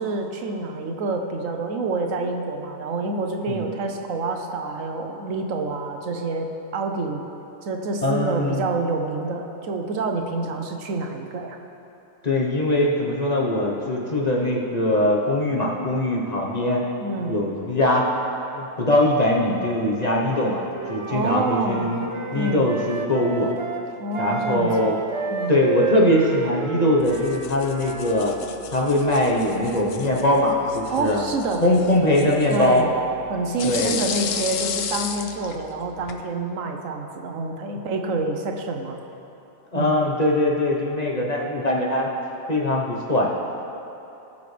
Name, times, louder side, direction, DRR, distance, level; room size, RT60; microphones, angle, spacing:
voice 1, 0.0-7.2 7.6-11.6 17.0-17.4 21.1-21.9 22.3-22.7 24.0-24.9 25.3-25.6 30.9-31.6 32.5-32.9 33.3-39.0 39.7-39.9, right 3 dB, 75° right, 3 dB, 1.2 m, -27 dB
voice 2, 8.0-8.6 12.2-16.8 17.3-18.1 18.5-20.6 20.9-22.0 22.3-23.5 24.2-24.9 25.5-28.3 28.7-31.2 31.6-32.8 33.6-33.9 39.7-42.1 42.5-43.3, left 1 dB, 30° left, -3 dB, 1.1 m, -21 dB
Wind instrument woodwind instrument, 20.2-28.2, right 4 dB, 50° right, 0.3 m, -31 dB
sound 1, 27.0-36.2, left 7 dB, 60° left, 0.7 m, -34 dB
19.0 x 6.9 x 3.4 m, 2.9 s
omnidirectional pair, 1.4 m